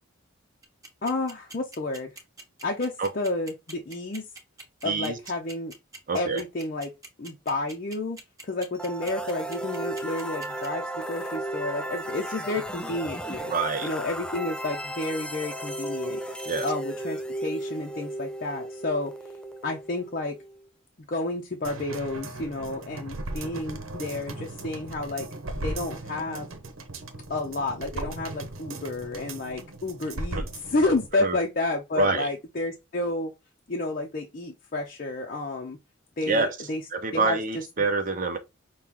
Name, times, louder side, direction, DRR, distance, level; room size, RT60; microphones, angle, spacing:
sound 1, 0.6-10.7, right 3 dB, 15° right, 1.1 m, -43 dB
voice 1, 1.0-2.1 2.6-4.2 4.8-5.7 6.1-6.9 7.2-13.5 13.8-16.2 16.6-19.1 19.6-20.4 21.1-25.3 25.6-26.5 27.3-33.3 33.7-35.8 36.2-36.8 37.1-37.6, left 2 dB, 45° left, 0.6 m, -30 dB
voice 2, 4.8-5.2 6.1-6.4 13.5-13.9 16.4-16.7 31.2-31.4 32.0-32.3 36.3-36.6 36.9-38.4, right 3 dB, 40° right, 0.7 m, -26 dB
sound 2, 8.8-20.6, right 1 dB, 5° left, 0.3 m, -35 dB
sound 3, 21.6-31.1 31.4-31.5, right 2 dB, 90° right, 0.9 m, -37 dB
6.0 x 2.3 x 3.6 m
head